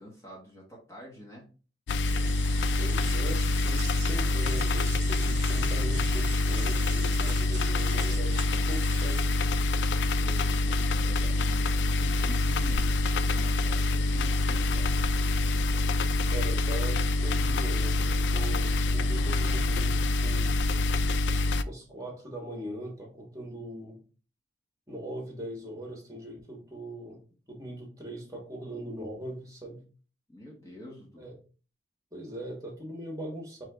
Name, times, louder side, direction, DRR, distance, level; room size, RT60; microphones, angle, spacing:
voice 1, 0.0-1.5 10.2-12.9 13.3-14.9 30.3-31.3, equal, 15° left, 1.2 m, -47 dB
sound 1, 1.9-21.6, left 2 dB, 75° left, 0.3 m, -26 dB
sound 2, 2.0-9.5, right 9 dB, 75° right, 0.6 m, -45 dB
voice 2, 2.8-9.2 16.3-20.5 21.6-24.0 24.9-27.2 27.5-29.9 31.2-31.3 32.1-33.6, right 1 dB, 20° right, 1.5 m, -40 dB
4.5 x 3.2 x 3.5 m
head